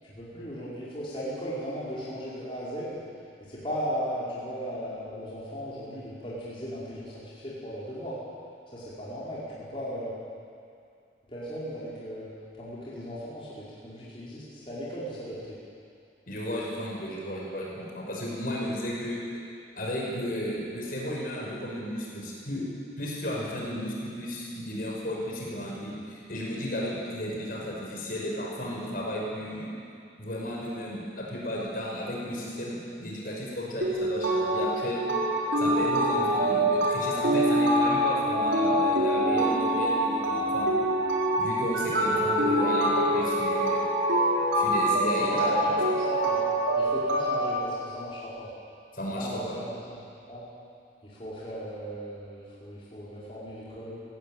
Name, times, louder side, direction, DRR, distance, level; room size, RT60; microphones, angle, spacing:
voice 1, 0.0-3.0 3.5-8.2 8.7-10.1 11.3-12.3 12.6-15.6 45.3-46.4 46.7-48.5 49.1-50.0 50.3-50.5 51.0-54.0, equal, 30° left, -9 dB, 5.0 m, -37 dB
voice 2, 16.3-19.2 19.7-22.7 23.0-29.7 30.2-35.1 35.6-40.7 41.4-43.8 44.5-45.6 48.9-49.6, equal, 50° left, -3 dB, 5.9 m, -34 dB
sound 1, 33.8-47.5, right 1 dB, 85° right, 4.9 m, -25 dB
21.5 x 17.0 x 9.2 m, 2.4 s
head